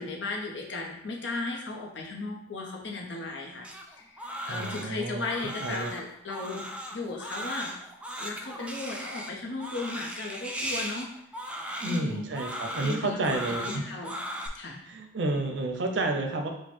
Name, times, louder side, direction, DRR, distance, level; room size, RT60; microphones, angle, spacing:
voice 1, 0.0-3.7 4.0-6.6 6.9-7.7 8.2-11.1 11.8-12.3 12.8-13.4 13.6-14.2 14.5-14.8, left 3 dB, 85° left, 0 dB, 0.8 m, -36 dB
Crying sobbing, 3.6-14.5, equal, 5° right, 0.3 m, -37 dB
voice 2, 4.5-5.2 5.6-5.9 11.8-13.8 14.9-16.5, right 2 dB, 85° right, 4 dB, 0.6 m, -30 dB
4.5 x 2.2 x 4.3 m, 0.78 s
head